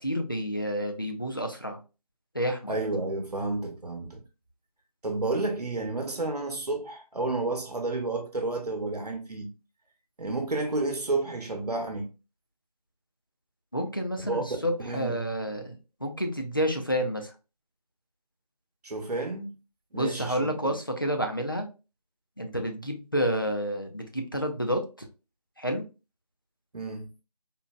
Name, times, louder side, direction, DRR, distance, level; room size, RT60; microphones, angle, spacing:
voice 1, 0.0-1.8 2.3-2.7 13.7-17.3 19.9-21.7 22.4-24.8 25.6-25.8, equal, 35° left, 0.4 m, -29 dB
voice 2, 2.7-4.2 5.0-9.5 10.2-12.1 14.3-14.5 14.8-15.2 18.8-19.5 19.9-20.5 26.7-27.1, right 2 dB, 75° right, 0.8 m, -31 dB
3.8 x 2.2 x 2.2 m
figure-of-eight pair, 175°, 20 cm